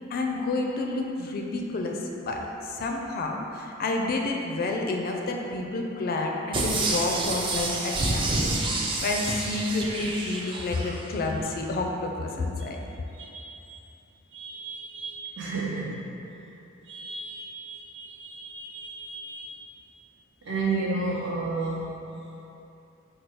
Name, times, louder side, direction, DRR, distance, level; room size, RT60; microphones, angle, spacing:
voice 1, 0.1-12.8, left 2 dB, 45° left, 1 dB, 0.4 m, -29 dB
sound 1, 6.5-11.0 11.4-11.5, right 2 dB, 25° right, 0.4 m, -28 dB
voice 2, 13.2-13.5 14.3-16.1 16.9-19.6 20.5-22.0, right 3 dB, 65° right, -5 dB, 0.8 m, -33 dB
4.5 x 2.3 x 4.7 m, 2.8 s
head